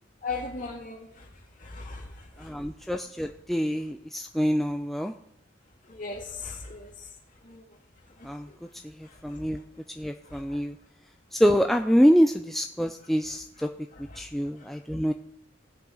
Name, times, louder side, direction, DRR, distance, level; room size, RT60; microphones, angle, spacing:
voice 1, 0.2-1.0 1.7-2.0 6.0-6.9 7.5-7.6, left 4 dB, 45° left, 2.2 m, -35 dB
voice 2, 2.4-5.1 8.2-8.5 8.8-9.6 10.0-10.8 11.3-13.7 14.2-15.1, equal, ahead, 0.4 m, -25 dB
18.5 x 7.6 x 3.9 m
head